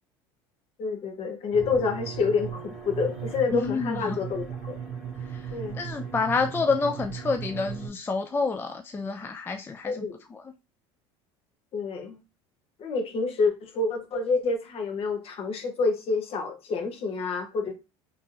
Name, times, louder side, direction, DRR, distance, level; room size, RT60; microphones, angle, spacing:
voice 1, 0.8-4.8 5.5-5.8 9.8-10.2 11.7-12.2 12.8-17.7, left 4 dB, 45° left, 1.0 m, -28 dB
sound 1, 1.5-7.9, right 7 dB, 5° right, 1.7 m, -37 dB
voice 2, 3.5-4.2 5.3-10.0 10.3-10.5, left 4 dB, 15° left, 0.3 m, -29 dB
3.5 x 2.9 x 2.6 m
supercardioid pair, 95°, 13 cm